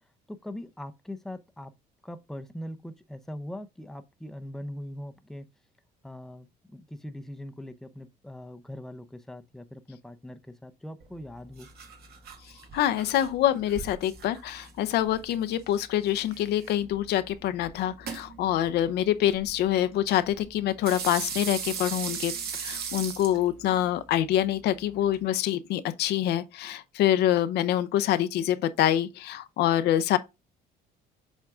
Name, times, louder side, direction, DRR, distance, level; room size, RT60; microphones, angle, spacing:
voice 1, 0.3-1.7 2.0-5.5 6.0-11.7, left 1 dB, ahead, 0.6 m, -41 dB
sound 1, 11.0-25.2, right 6 dB, 65° right, 1.7 m, -40 dB
voice 2, 12.7-30.2, left 12 dB, 75° left, 0.6 m, -26 dB
7.4 x 3.7 x 3.5 m
cardioid pair, 110°, 17 cm